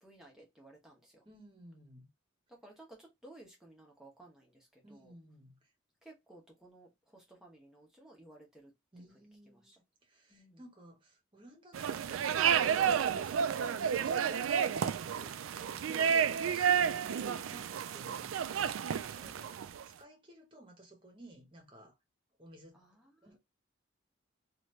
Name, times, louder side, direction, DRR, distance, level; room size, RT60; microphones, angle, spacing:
voice 1, 0.0-1.2 2.5-5.1 6.0-8.7 9.0-9.7 10.3-10.6 19.2-19.4 22.7-23.4, right 1 dB, 5° right, 1.0 m, -57 dB
voice 2, 1.2-2.1 4.8-5.5 8.9-21.9 22.4-22.8 23.2-23.4, right 1 dB, 25° right, 1.1 m, -56 dB
sound 1, 11.7-19.8, right 8 dB, 80° right, 0.3 m, -31 dB
3.0 x 2.5 x 3.2 m
head